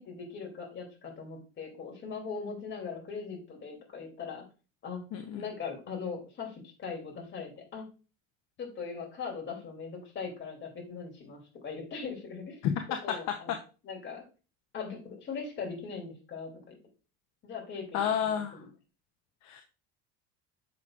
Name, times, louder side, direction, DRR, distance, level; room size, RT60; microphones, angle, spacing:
voice 1, 0.0-4.4 4.8-5.0 5.3-7.8 8.6-12.6 13.0-13.6 13.8-14.2 14.7-16.7 17.4-18.7, left 5 dB, 40° left, 1 dB, 2.9 m, -40 dB
voice 2, 5.1-5.4 12.6-12.7 13.1-13.2 17.9-18.6 19.4-19.6, left 9 dB, 60° left, 6 dB, 0.9 m, -30 dB
7.5 x 6.1 x 2.4 m, 0.33 s
supercardioid pair, 110°, 30 cm